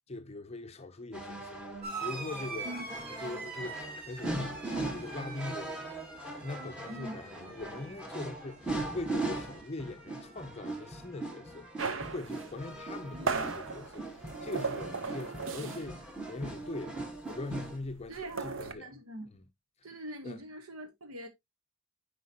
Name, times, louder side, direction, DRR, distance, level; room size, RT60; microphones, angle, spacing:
voice 1, 0.0-2.7 3.2-16.0 16.3-17.0 17.3-19.0 19.3-19.5 19.8-19.9 20.2-20.4, left 2 dB, 30° left, 0.6 m, -42 dB
sound 1, 1.1-17.8, right 2 dB, 5° right, 1.4 m, -40 dB
sound 2, 1.8-10.8 11.1-11.9 13.0-13.1, right 4 dB, 45° right, 2.1 m, -45 dB
sound 3, 11.8-16.0 16.3-16.5 16.8-18.7, right 4 dB, 60° right, 0.8 m, -37 dB
voice 2, 13.1-13.4 18.1-19.3 19.8-21.3, right 1 dB, 75° right, 1.1 m, -43 dB
10.0 x 4.9 x 2.8 m
head